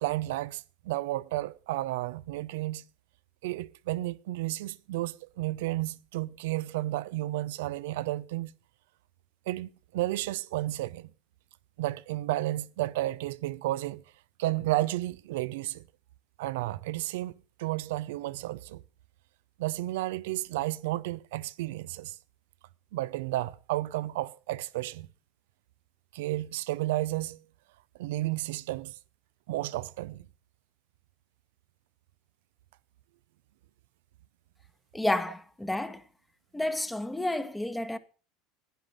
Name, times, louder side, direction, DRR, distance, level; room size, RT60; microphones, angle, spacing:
voice 1, 0.0-2.8 3.4-8.5 9.5-11.1 11.8-14.0 14.4-15.9 16.4-18.8 19.6-22.2 22.9-25.1 26.1-27.4 28.0-28.9 29.5-30.3, right 16 dB, 75° right, 0.6 m, -32 dB
voice 2, 34.9-36.0 36.5-38.0, left 1 dB, 10° left, 1.3 m, -30 dB
10.5 x 10.5 x 5.4 m
hypercardioid pair, 80°, 0 cm